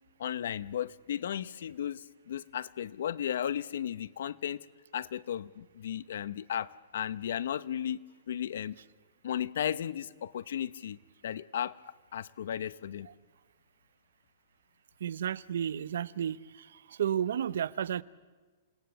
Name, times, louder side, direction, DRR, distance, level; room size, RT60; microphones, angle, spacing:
voice 1, 0.2-4.6 4.9-8.0 8.3-8.8 9.2-11.0 11.2-13.1, left 9 dB, 65° left, 0.7 m, -35 dB
voice 2, 15.0-16.4 17.0-18.0, right 9 dB, 70° right, 0.7 m, -31 dB
28.5 x 18.0 x 6.9 m
hypercardioid pair, 170°, 0 cm